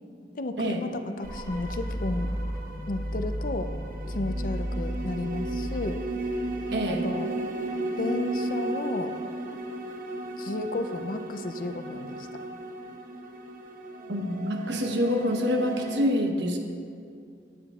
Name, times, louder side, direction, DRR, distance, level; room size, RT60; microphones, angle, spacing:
voice 1, 0.3-2.3 2.9-3.7 4.1-6.0 6.9-7.3 8.0-9.1 10.4-12.4, left 2 dB, 50° left, 8 dB, 0.5 m, -33 dB
sound 1, 1.2-7.2, equal, 15° left, 1.1 m, -34 dB
sound 2, 1.2-16.0, right 2 dB, 50° right, 0.8 m, -35 dB
voice 2, 6.7-7.0 14.1-16.6, equal, 85° right, 3 dB, 1.1 m, -26 dB
18.0 x 8.6 x 2.4 m, 2.4 s
head